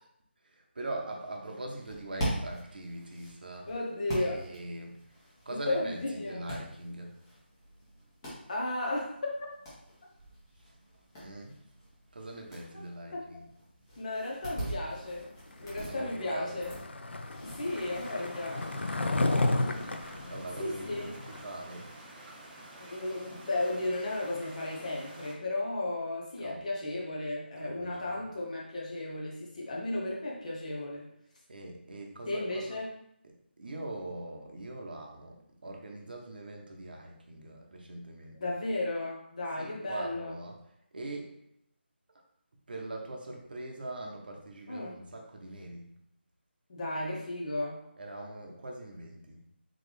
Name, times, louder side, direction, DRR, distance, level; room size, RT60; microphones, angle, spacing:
voice 1, 0.4-3.7 4.2-5.0 5.5-7.2 10.6-10.7 11.2-11.6 12.1-13.5 15.8-16.7 19.4-19.9 20.3-21.9 26.4-26.6 27.6-28.3 31.5-32.8 33.2-38.5 39.6-40.6 40.9-41.4 42.7-45.9 48.0-49.4, right 2 dB, 55° right, 1 dB, 0.8 m, -42 dB
sound 1, 1.7-18.1, right 1 dB, 20° left, 1.3 m, -43 dB
voice 2, 3.7-4.4 5.5-6.4 8.5-9.1 12.7-12.8 13.1-13.2 14.0-15.3 15.6-16.7 17.4-18.7 20.6-21.1 22.8-31.1 32.3-32.9 38.4-40.3 44.7-45.0 46.7-47.8, left 2 dB, 40° left, -2 dB, 0.9 m, -34 dB
Skateboard, 16.0-21.4, left 2 dB, 75° left, 0.4 m, -32 dB
sound 2, 17.6-25.3, right 1 dB, 5° right, 0.3 m, -49 dB
3.8 x 3.2 x 3.2 m, 0.74 s
figure-of-eight pair, 160°, 6 cm